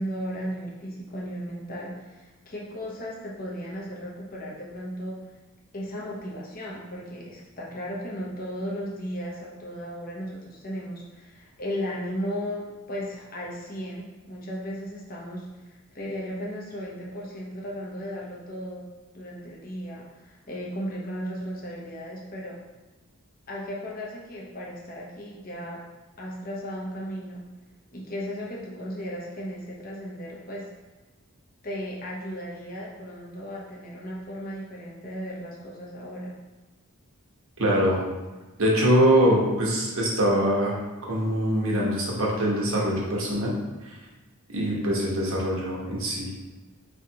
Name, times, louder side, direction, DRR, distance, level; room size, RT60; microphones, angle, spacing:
voice 1, 0.0-5.2 5.7-22.6 23.5-25.8 26.2-27.4 27.9-30.7 31.6-36.4, equal, 40° left, -4 dB, 0.9 m, -35 dB
voice 2, 37.6-38.1 38.6-43.5 43.8-44.0 44.5-46.3, equal, 65° right, -4 dB, 1.1 m, -23 dB
5.0 x 3.2 x 2.8 m, 1.2 s
head